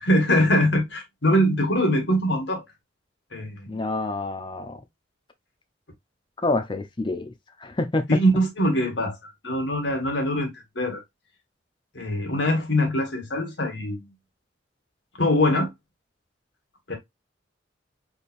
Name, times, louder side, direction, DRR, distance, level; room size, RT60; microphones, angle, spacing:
voice 1, 0.1-2.6 3.3-3.7 8.1-9.2 9.4-10.5 10.8-11.0 12.0-14.1 15.2-15.7 16.9-17.0, equal, 70° left, 1.8 m, -22 dB
voice 2, 3.7-4.8 6.4-7.3 7.6-8.0, left 2 dB, 25° left, 0.7 m, -27 dB
4.4 x 3.6 x 2.6 m
head